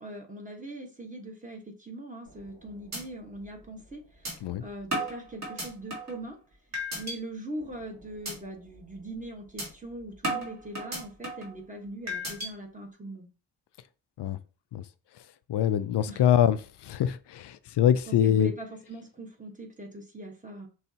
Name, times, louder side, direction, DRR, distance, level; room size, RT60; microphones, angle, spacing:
voice 1, 0.0-6.4 6.9-13.3 16.1-16.2 18.1-20.7, right 1 dB, 15° right, 1.2 m, -41 dB
sound 1, 2.3-2.6 2.9-3.0 3.4-3.5 4.2-4.3 4.9-6.2 6.7-7.2 7.6-7.8 8.2-8.4 8.8-8.9 9.6-9.7 10.2-11.5 12.1-12.5, right 1 dB, 35° right, 2.0 m, -34 dB
voice 2, 15.5-16.6 16.8-18.5, left 10 dB, 60° left, 0.5 m, -24 dB
5.5 x 3.1 x 2.8 m
wide cardioid pair, 120°, 46 cm